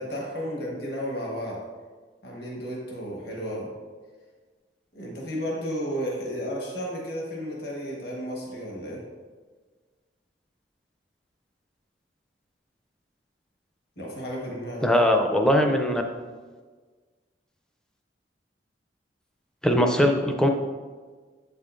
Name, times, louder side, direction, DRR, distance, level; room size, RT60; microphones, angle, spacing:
voice 1, 0.0-1.6 2.2-3.7 4.9-9.0 14.0-15.2, equal, 60° left, -3 dB, 1.3 m, -33 dB
voice 2, 14.8-16.0 19.6-20.5, equal, 5° left, 4 dB, 0.4 m, -20 dB
8.0 x 5.5 x 2.5 m, 1.4 s
head